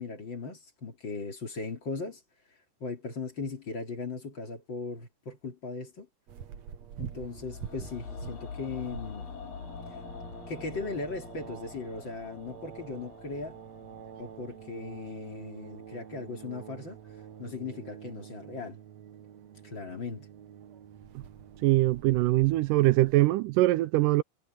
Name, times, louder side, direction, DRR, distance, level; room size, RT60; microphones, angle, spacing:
voice 1, 0.0-2.2 2.8-6.1 7.0-9.3 10.5-13.6 14.2-17.0 17.4-18.8 19.6-20.3, left 4 dB, 35° left, 3.0 m, -38 dB
sound 1, 6.3-23.2, right 9 dB, 60° right, 2.3 m, -47 dB
sound 2, 7.3-17.4 17.7-17.8, left 5 dB, 75° left, 4.7 m, -46 dB
voice 2, 21.6-24.2, right 18 dB, 80° right, 2.1 m, -23 dB
omnidirectional pair, 4.0 m